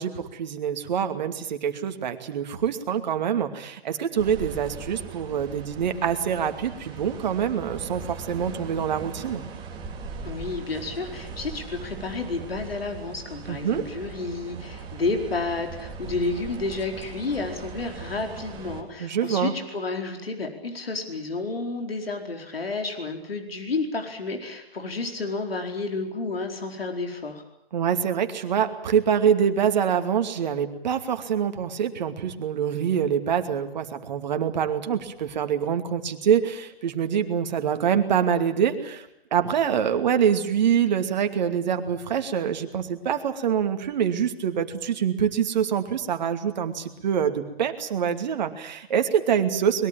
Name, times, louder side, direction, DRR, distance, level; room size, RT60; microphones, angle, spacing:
voice 1, 0.0-9.4 13.5-13.8 19.0-19.5 27.7-49.9, right 8 dB, 45° right, 7 dB, 2.6 m, -25 dB
sound 1, 4.2-18.8, right 5 dB, 15° right, 2.7 m, -39 dB
voice 2, 10.2-27.4, left 3 dB, 70° left, 4 dB, 4.6 m, -31 dB
23.0 x 21.5 x 8.9 m, 0.79 s
figure-of-eight pair, 135°, 30 cm